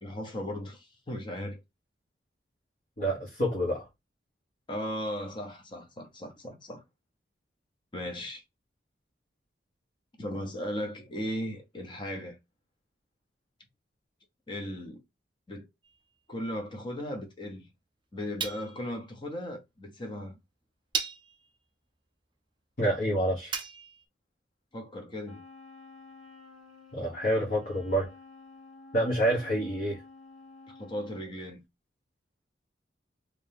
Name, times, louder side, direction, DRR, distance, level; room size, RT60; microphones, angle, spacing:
voice 1, 0.0-1.6 4.7-6.8 7.9-8.4 10.2-12.4 14.5-15.0 15.5-15.7 16.3-17.7 18.1-20.3 24.7-25.4 30.7-31.6, equal, 25° left, 0.8 m, -37 dB
voice 2, 3.0-3.9 22.8-23.5 26.9-28.1 28.9-30.0, right 1 dB, 50° left, 1.3 m, -27 dB
sound 1, 15.8-16.0 18.4-19.0 20.0-20.1 20.9-21.5 23.5-24.0, right 6 dB, 25° right, 0.7 m, -35 dB
Wind instrument woodwind instrument, 25.2-31.4, left 3 dB, ahead, 1.1 m, -51 dB
3.2 x 2.8 x 3.4 m
head